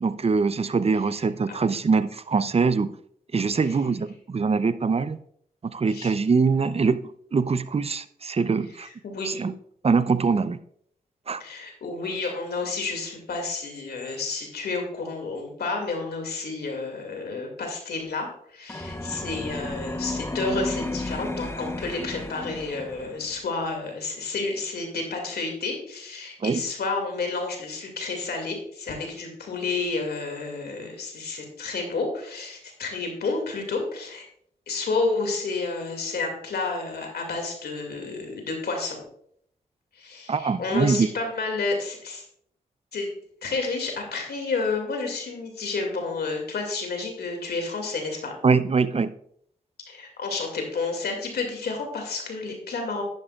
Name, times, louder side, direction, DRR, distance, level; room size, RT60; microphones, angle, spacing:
voice 1, 0.0-2.9 3.3-5.2 5.7-8.9 9.2-9.5 9.8-10.6 11.3-11.4 26.4-26.6 40.3-41.1 48.4-49.1, right 4 dB, 40° right, 14 dB, 0.6 m, -23 dB
voice 2, 9.0-9.4 11.4-34.2 34.7-39.0 39.9-42.2 42.9-43.1 43.4-48.3 49.9-53.0, left 3 dB, 75° left, 3 dB, 2.4 m, -30 dB
sound 1, 18.7-23.3, left 2 dB, 15° left, 0.9 m, -33 dB
10.5 x 9.8 x 2.4 m, 0.66 s
supercardioid pair, 45°, 17 cm